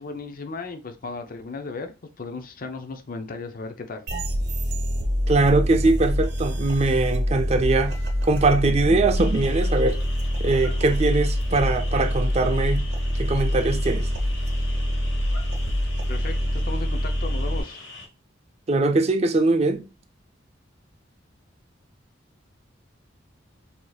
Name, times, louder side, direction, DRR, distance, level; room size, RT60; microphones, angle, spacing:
voice 1, 0.0-1.9 2.2-4.0 16.1-17.9, left 3 dB, 45° left, 0.5 m, -35 dB
sound 1, 4.1-17.6, equal, 55° right, 1.0 m, -25 dB
voice 2, 5.3-8.0 8.2-10.0 10.4-12.9 13.2-14.1 18.7-19.8, right 2 dB, 35° right, 0.5 m, -21 dB
sound 2, 9.1-18.1, left 3 dB, 75° left, 1.2 m, -42 dB
4.6 x 2.7 x 2.3 m
head